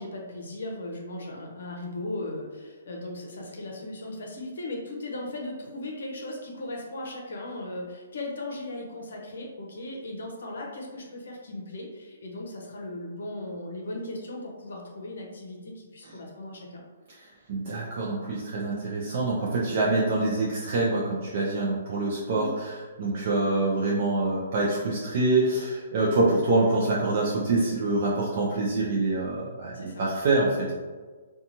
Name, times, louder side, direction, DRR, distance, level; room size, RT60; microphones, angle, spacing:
voice 1, 0.0-16.8 22.3-22.5 29.7-30.1, left 1 dB, 75° left, 0 dB, 0.6 m, -37 dB
voice 2, 17.5-30.7, right 2 dB, 45° right, -5 dB, 0.4 m, -25 dB
2.8 x 2.3 x 2.6 m, 1.4 s
hypercardioid pair, 170°, 0 cm